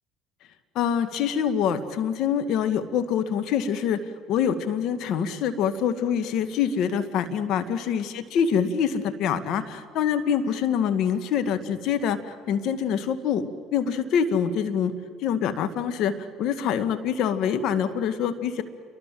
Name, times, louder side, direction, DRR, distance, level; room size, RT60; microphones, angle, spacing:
voice 1, 0.8-4.0 4.3-14.9 15.2-18.6, left 8 dB, 65° left, 9 dB, 2.0 m, -25 dB
28.5 x 24.0 x 7.7 m, 2.1 s
hypercardioid pair, 75°, 0 cm